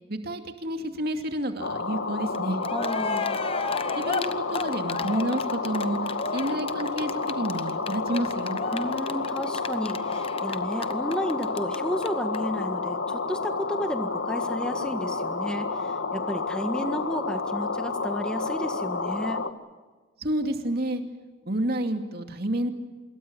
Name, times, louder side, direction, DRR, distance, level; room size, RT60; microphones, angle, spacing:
voice 1, 0.1-2.6 3.9-8.6 20.2-21.0 21.4-22.7, right 1 dB, 50° right, 5 dB, 2.6 m, -29 dB
sound 1, 1.6-19.5, left 4 dB, 70° left, 1.6 m, -30 dB
Cheering, 2.3-2.4 2.6-11.8 12.0-12.1 12.3-12.4, left 4 dB, 25° left, 1.0 m, -33 dB
voice 2, 2.7-3.4 8.7-19.5, equal, 5° left, 7 dB, 1.7 m, -32 dB
26.5 x 22.5 x 7.1 m, 1.3 s
head